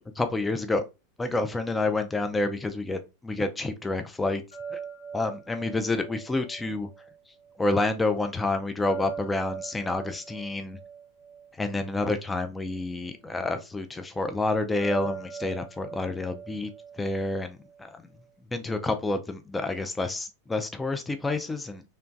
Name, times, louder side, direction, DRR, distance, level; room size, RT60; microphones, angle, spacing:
voice 1, 0.2-0.8 1.2-4.4 4.7-4.8 5.1-6.9 7.6-10.8 11.6-16.7 17.0-18.1 18.5-21.8, left 2 dB, 15° left, 0.3 m, -29 dB
sound 1, 4.5-7.6 8.8-12.3 14.8-17.9, right 6 dB, 75° left, 1.3 m, -41 dB
2.9 x 2.2 x 2.5 m
hypercardioid pair, 90°, 0 cm